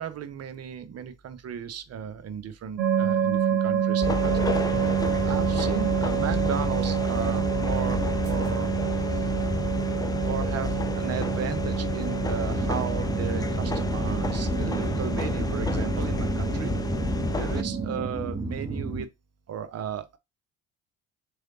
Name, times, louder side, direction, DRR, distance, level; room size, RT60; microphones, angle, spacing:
voice 1, 0.0-8.7 9.1-9.3 10.2-16.9 17.3-19.1 19.5-20.2, right 8 dB, 40° right, 0.8 m, -35 dB
sound 1, 2.8-18.1, right 9 dB, 80° right, 0.7 m, -28 dB
sound 2, 4.0-17.6, left 3 dB, 10° left, 0.4 m, -30 dB
sound 3, 12.4-19.0, right 3 dB, 10° right, 0.9 m, -33 dB
3.8 x 3.3 x 2.7 m
hypercardioid pair, 55°, 38 cm